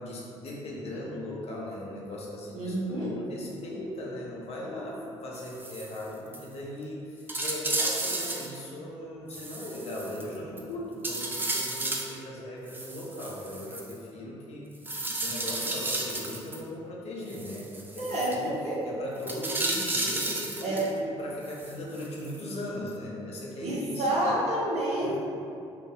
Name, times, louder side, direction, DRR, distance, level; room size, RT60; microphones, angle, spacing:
voice 1, 0.0-14.7 15.1-24.3 25.0-25.2, left 1 dB, 45° left, -4 dB, 0.8 m, -38 dB
voice 2, 2.5-3.1 18.0-18.8 20.6-20.9 23.6-25.2, right 1 dB, 45° right, -6 dB, 0.8 m, -29 dB
sound 1, 5.3-6.0 6.3-6.5 6.8-6.9 7.3-8.6 9.3-10.6 11.0-12.2 12.7-13.9 14.8-16.6 17.3-18.4 19.2-20.9 21.4-22.4 22.9-23.0, right 2 dB, 15° right, 0.4 m, -33 dB
2.5 x 2.4 x 3.9 m, 2.6 s
figure-of-eight pair, 50°, 15 cm